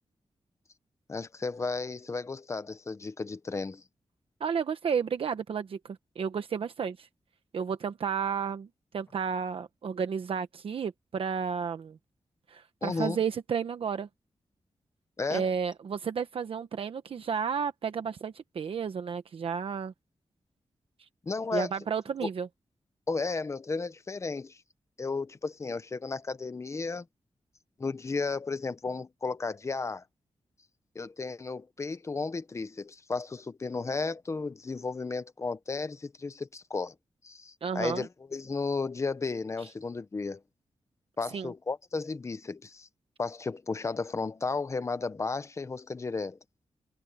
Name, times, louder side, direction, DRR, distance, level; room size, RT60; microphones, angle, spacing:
voice 1, 1.1-3.8 12.8-13.2 15.2-15.5 21.2-21.7 22.2-22.3 23.1-24.6 25.0-27.0 27.8-30.0 30.9-36.9 37.2-40.4 41.2-42.9 43.2-46.4, left 4 dB, 30° left, 0.9 m, -34 dB
voice 2, 4.4-7.1 7.5-8.7 8.9-12.0 12.5-14.1 15.3-19.9 21.5-22.5 37.6-38.1 39.6-39.7 41.3-41.5, right 6 dB, 65° right, 1.0 m, -32 dB
wide cardioid pair, 175°, 10 cm